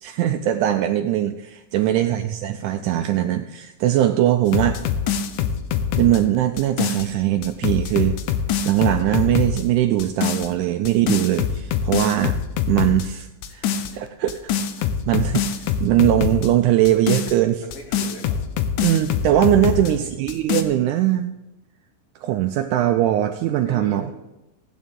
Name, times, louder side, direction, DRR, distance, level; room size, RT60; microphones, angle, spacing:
voice 1, 0.0-4.8 6.0-8.2 8.7-12.4 12.7-14.5 15.1-15.6 15.8-17.6 18.8-21.3 22.2-24.1, right 12 dB, 80° right, 7 dB, 1.8 m, -20 dB
voice 2, 1.8-2.2 16.8-16.9 17.6-18.5 19.7-20.1 23.7-24.1, left 2 dB, 55° left, 1 dB, 1.8 m, -37 dB
sound 1, 4.5-7.1 7.4-9.6 10.0-10.5 10.9-13.1 13.4-13.9 14.3-16.5 16.9-19.9 20.3-20.6, left 8 dB, 75° left, 2.1 m, -24 dB
15.5 x 9.2 x 3.7 m, 0.96 s
omnidirectional pair, 3.9 m